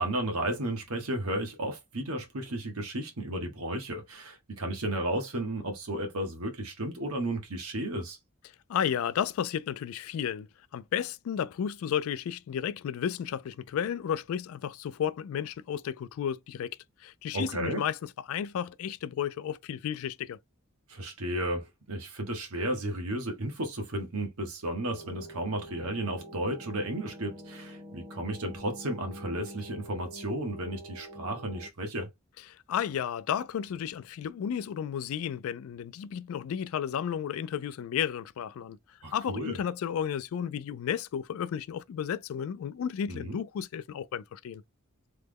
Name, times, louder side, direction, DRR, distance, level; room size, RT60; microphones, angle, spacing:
voice 1, 0.0-8.2 17.3-17.8 20.9-32.1 39.0-39.6 43.1-43.4, right 1 dB, 90° right, 1.0 m, -33 dB
voice 2, 8.7-20.4 32.5-38.8 39.1-44.6, left 8 dB, 70° left, 0.3 m, -33 dB
sound 1, 24.9-31.7, equal, 15° right, 0.5 m, -46 dB
3.2 x 2.1 x 3.4 m
head